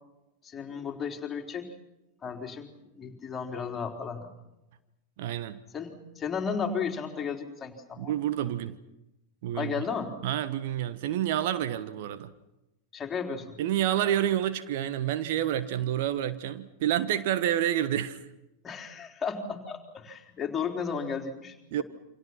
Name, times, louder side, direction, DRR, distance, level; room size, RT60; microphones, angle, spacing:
voice 1, 0.4-1.7 2.2-2.7 3.0-4.4 5.7-8.2 9.5-10.1 12.9-13.6 18.6-21.8, left 6 dB, 20° left, 2 dB, 3.9 m, -34 dB
voice 2, 5.2-5.6 8.0-8.8 9.4-9.7 10.2-12.3 13.6-18.2 21.7-21.8, right 11 dB, 50° right, 12 dB, 1.3 m, -28 dB
28.5 x 26.0 x 6.0 m, 0.93 s
figure-of-eight pair, 90°, 0 cm